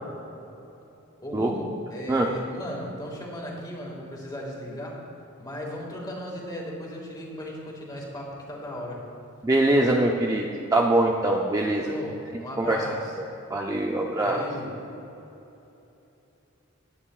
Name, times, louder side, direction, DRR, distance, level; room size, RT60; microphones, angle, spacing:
voice 1, 1.2-5.0 5.4-9.1 11.6-13.1 14.1-14.8, equal, 20° left, -2 dB, 1.9 m, -36 dB
voice 2, 9.4-11.9 12.6-13.0 13.5-14.4, right 1 dB, 15° right, 0 dB, 0.5 m, -23 dB
17.0 x 9.0 x 2.4 m, 3.0 s
head